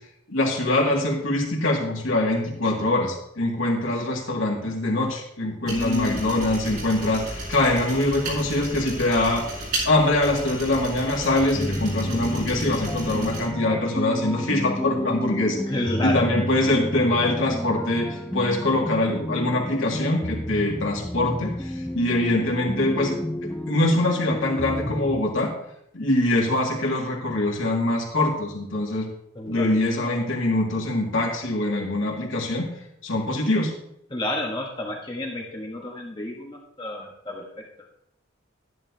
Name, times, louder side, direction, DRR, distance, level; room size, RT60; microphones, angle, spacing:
voice 1, 0.3-9.5 9.8-15.6 16.0-23.2 23.7-25.5 25.9-29.1 29.5-32.7 33.0-33.7, left 2 dB, 80° left, -1 dB, 2.2 m, -23 dB
voice 2, 5.6-6.5 15.7-16.3 29.3-29.7 34.1-37.7, left 1 dB, 25° left, 0 dB, 1.2 m, -30 dB
sound 1, 5.7-13.5, right 1 dB, 55° right, 4.7 m, -34 dB
sound 2, 11.5-25.2, left 1 dB, 5° left, 0.4 m, -31 dB
12.0 x 11.0 x 2.8 m, 0.75 s
head